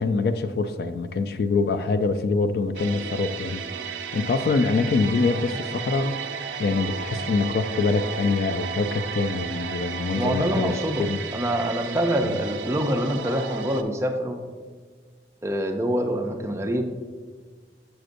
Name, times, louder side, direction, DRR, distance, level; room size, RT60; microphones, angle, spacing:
voice 1, 0.0-10.7 11.0-11.2 12.2-12.4, left 3 dB, 60° left, 10 dB, 0.3 m, -25 dB
sound 1, 2.7-13.8, right 6 dB, 85° right, 0.4 m, -34 dB
voice 2, 10.2-14.4 15.4-16.8, equal, 15° right, 5 dB, 0.4 m, -25 dB
7.0 x 6.3 x 2.5 m, 1.5 s
head